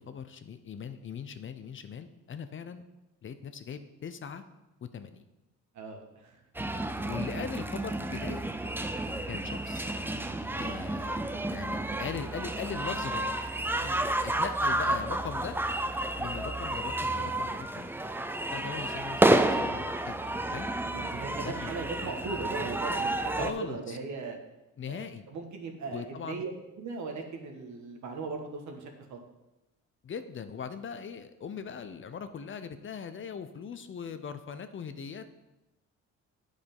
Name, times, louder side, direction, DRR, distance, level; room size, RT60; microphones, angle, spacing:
voice 1, 0.0-2.9 3.2-4.4 4.8-5.2 7.0-8.4 9.3-9.9 10.5-13.3 14.2-15.6 16.2-17.9 18.5-20.2 20.5-20.7 21.4-21.8 23.4-24.0 24.8-25.2 25.9-26.4 30.0-35.3, left 6 dB, 40° left, 10 dB, 0.6 m, -40 dB
voice 2, 5.7-6.4 13.8-14.0 20.9-24.4 24.9-25.0 25.3-26.5 26.8-29.2, right 4 dB, 70° right, 3 dB, 1.5 m, -38 dB
sound 1, 6.5-23.5, right 1 dB, 5° right, 0.5 m, -30 dB
8.6 x 5.0 x 5.4 m, 0.98 s
cardioid pair, 90°, 30 cm